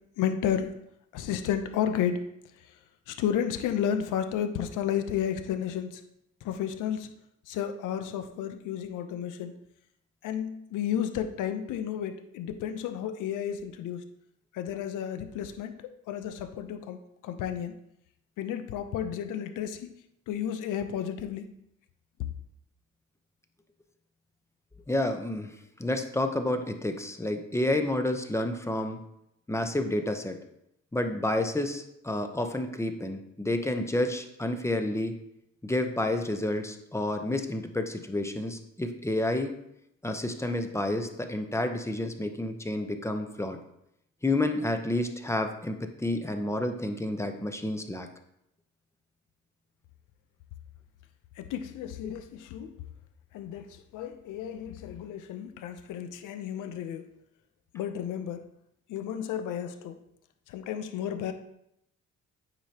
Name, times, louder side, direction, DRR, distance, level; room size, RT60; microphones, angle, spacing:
voice 1, 0.2-0.8 1.1-2.2 3.1-6.0 6.4-7.1 7.5-9.5 10.2-14.0 14.5-15.8 16.1-17.7 18.4-19.9 20.3-21.5 51.4-52.8 53.3-57.1 57.7-58.4 58.9-60.0 60.5-61.3, left 9 dB, 90° left, 8 dB, 0.7 m, -32 dB
voice 2, 24.9-29.0 29.5-30.4 30.9-35.2 35.6-39.6 40.0-43.6 44.2-48.1, left 1 dB, 10° left, 6 dB, 0.8 m, -30 dB
8.9 x 4.9 x 2.9 m, 0.78 s
cardioid pair, 90°, 30 cm